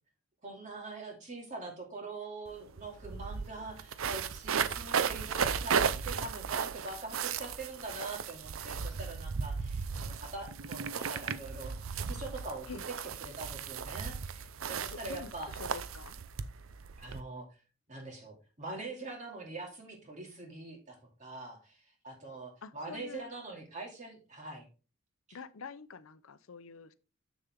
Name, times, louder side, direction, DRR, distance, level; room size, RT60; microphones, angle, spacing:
voice 1, 0.4-12.7 13.2-15.5 17.0-17.5 17.9-24.7 25.3-25.4, right 2 dB, 35° right, 2.6 m, -44 dB
sound 1, 2.5-2.6 2.8-17.2, right 6 dB, 75° right, 0.6 m, -35 dB
voice 2, 14.9-16.2 22.6-23.3 25.3-26.9, left 5 dB, 80° left, 0.6 m, -46 dB
7.2 x 6.8 x 3.6 m
head